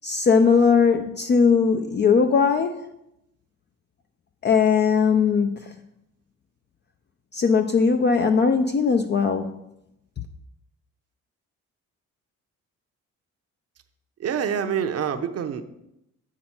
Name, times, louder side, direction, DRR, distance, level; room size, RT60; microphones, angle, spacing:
voice 1, 0.0-2.8 4.4-5.7 7.3-9.5, left 5 dB, 35° left, 5 dB, 0.5 m, -19 dB
voice 2, 14.2-15.6, right 7 dB, 55° right, 8 dB, 0.8 m, -26 dB
7.4 x 6.0 x 4.3 m, 0.84 s
cardioid pair, 90°, 30 cm